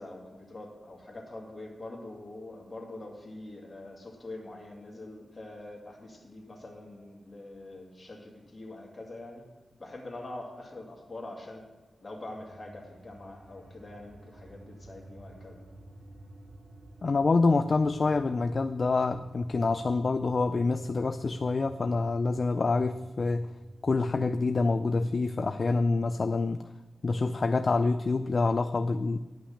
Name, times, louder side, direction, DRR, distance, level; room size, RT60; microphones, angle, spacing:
voice 1, 0.0-9.4 9.8-11.7 12.0-15.6, left 2 dB, 30° left, -1 dB, 2.4 m, -44 dB
sound 1, 12.1-25.3, right 1 dB, 65° right, 0.9 m, -51 dB
voice 2, 17.0-23.5 23.8-26.7 27.0-29.2, left 3 dB, 45° left, 10 dB, 0.3 m, -26 dB
11.5 x 5.9 x 7.1 m, 1.1 s
wide cardioid pair, 110°, 0 cm